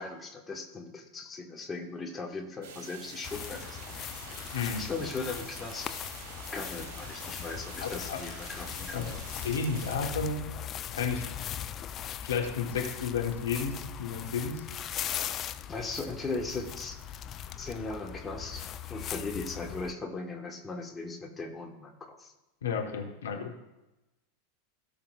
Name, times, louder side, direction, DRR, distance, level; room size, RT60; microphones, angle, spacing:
voice 1, 0.0-4.0 4.3-6.0 6.5-9.2 15.7-17.0 17.6-18.6 18.9-22.3, left 3 dB, 20° left, 2 dB, 1.5 m, -38 dB
sound 1, 2.6-10.0, right 5 dB, 55° right, 2.6 m, -47 dB
sound 2, 3.2-19.9, left 10 dB, 35° left, 0.5 m, -40 dB
voice 2, 4.5-4.8 7.8-8.2 8.9-10.4 10.9-11.3 12.2-14.6 22.6-23.5, left 5 dB, 70° left, 2 dB, 1.3 m, -32 dB
17.5 x 5.8 x 2.5 m, 0.99 s
figure-of-eight pair, 85°, 0 cm